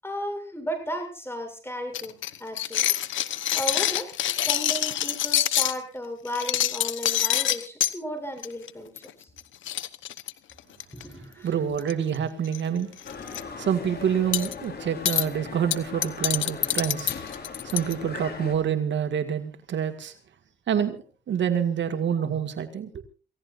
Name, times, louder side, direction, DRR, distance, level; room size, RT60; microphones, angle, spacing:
voice 1, 0.0-2.9 3.5-9.3 10.9-11.5 13.3-13.5, equal, 10° left, 7.7 m, -35 dB
sound 1, 1.9-5.8 6.3-7.9 8.4-8.7 9.0-9.1 9.4-9.5 9.7-11.0 11.8-12.2 12.4-12.6 13.0-13.4 14.3-14.5 15.1-15.3 15.7-17.9, left 12 dB, 90° left, 1.0 m, -26 dB
voice 2, 11.4-12.9 13.6-17.1 17.6-20.1 20.7-21.0 21.3-23.0, right 8 dB, 70° right, 2.0 m, -27 dB
sound 2, 13.0-18.6, left 5 dB, 55° left, 5.3 m, -39 dB
28.0 x 16.5 x 2.6 m
cardioid pair, 90°, 19 cm